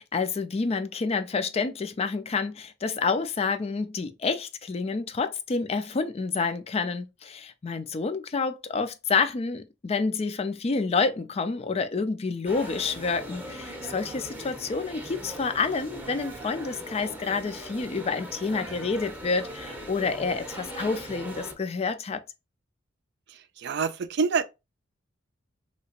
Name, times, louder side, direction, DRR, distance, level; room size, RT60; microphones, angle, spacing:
voice 1, 0.0-22.2, left 4 dB, 30° left, 0.4 m, -28 dB
sound 1, 12.4-21.5, right 1 dB, 10° right, 0.7 m, -40 dB
voice 2, 23.6-24.4, right 5 dB, 60° right, 0.4 m, -26 dB
3.2 x 2.9 x 2.9 m
head